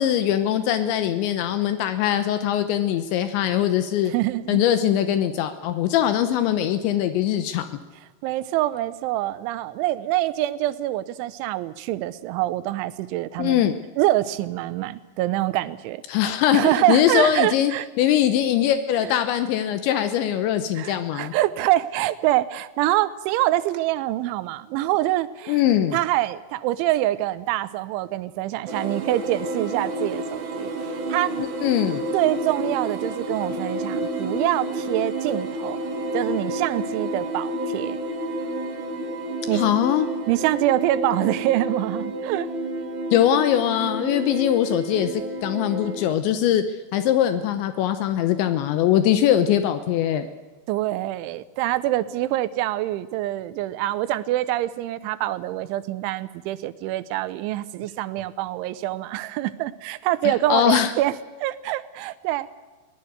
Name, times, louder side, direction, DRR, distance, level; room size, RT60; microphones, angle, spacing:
voice 1, 0.0-4.1 4.5-7.6 13.4-13.7 16.1-17.7 18.0-21.3 25.5-26.0 31.4-32.0 39.5-40.1 43.1-46.6 46.9-50.3 60.5-60.9, left 11 dB, 80° left, 9 dB, 3.2 m, -21 dB
voice 2, 4.1-4.6 8.2-13.6 14.0-16.0 16.5-17.9 19.0-19.1 20.7-25.6 25.9-31.3 32.1-35.8 36.1-38.0 39.5-39.7 40.3-42.5 50.7-61.1 61.4-62.5, right 15 dB, 90° right, 14 dB, 3.3 m, -25 dB
sound 1, 28.7-46.1, right 1 dB, 50° right, 2.8 m, -30 dB
23.5 x 18.0 x 8.0 m, 1.3 s
omnidirectional pair, 5.3 m